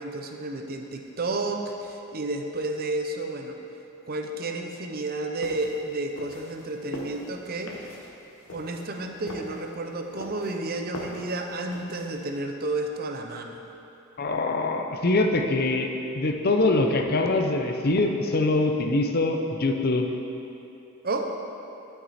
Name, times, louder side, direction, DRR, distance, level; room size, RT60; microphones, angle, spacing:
voice 1, 0.0-3.6 4.1-7.9 8.5-13.6 21.0-21.2, right 2 dB, 45° right, 4 dB, 0.7 m, -31 dB
sound 1, 5.4-12.4, left 1 dB, 65° left, 1.1 m, -41 dB
voice 2, 14.2-20.1, left 2 dB, 45° left, 4 dB, 0.6 m, -24 dB
12.0 x 6.0 x 4.2 m, 2.8 s
head